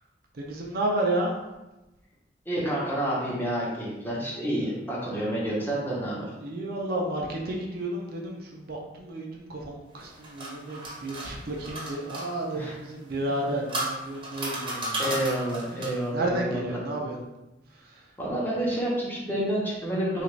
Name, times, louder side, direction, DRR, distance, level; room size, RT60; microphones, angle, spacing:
voice 1, 0.3-1.3 6.1-15.0 16.1-17.2 17.8-18.0, right 1 dB, 60° right, -1 dB, 0.5 m, -31 dB
voice 2, 2.5-6.3 12.5-12.7 15.0-16.8 18.2-20.2, right 1 dB, 10° left, -6 dB, 0.9 m, -29 dB
sound 1, 10.0-12.3 13.2-16.1, right 1 dB, 30° right, 0.8 m, -34 dB
3.3 x 2.5 x 3.1 m, 1.0 s
head